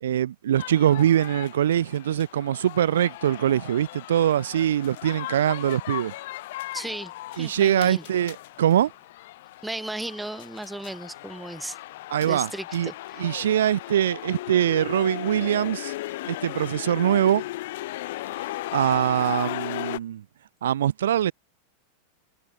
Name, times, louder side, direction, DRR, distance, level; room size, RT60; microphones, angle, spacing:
voice 1, 0.0-6.1 7.4-8.9 12.1-12.9 13.2-15.9 16.3-17.4 18.7-20.2 20.6-21.3, right 10 dB, 60° right, 1.5 m, -23 dB
sound 1, 0.6-20.0, left 17 dB, 55° left, 2.1 m, -37 dB
voice 2, 6.7-8.0 9.6-11.8 12.2-13.2, right 1 dB, 5° right, 1.5 m, -35 dB
figure-of-eight pair, 90°, 0 cm